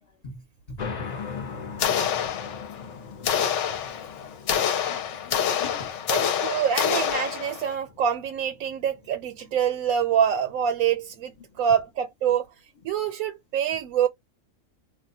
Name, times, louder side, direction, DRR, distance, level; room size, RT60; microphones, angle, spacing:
voice 1, 0.2-0.8 1.2-1.3 1.7-2.2 2.8-3.4 3.7-3.9 4.8-6.0, left 2 dB, 35° left, 0.9 m, -45 dB
sound 1, 0.8-11.9, left 5 dB, 50° left, 0.5 m, -41 dB
sound 2, 1.8-2.9 3.2-7.7, left 8 dB, 65° left, 0.9 m, -26 dB
voice 2, 6.1-12.5 12.8-14.1, right 8 dB, 85° right, 1.0 m, -25 dB
2.3 x 2.2 x 3.8 m
omnidirectional pair, 1.5 m